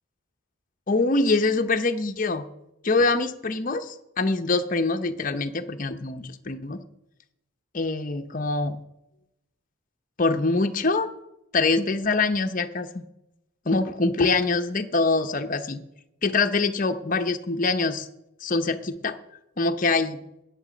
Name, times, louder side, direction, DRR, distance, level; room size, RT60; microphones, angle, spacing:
voice 1, 0.9-2.5 2.8-6.8 7.7-8.8 10.2-11.1 11.5-13.0 13.7-15.8 16.2-18.1 18.4-19.2 19.6-20.2, left 3 dB, 40° left, 7 dB, 0.7 m, -24 dB
13.5 x 9.2 x 5.1 m, 0.88 s
head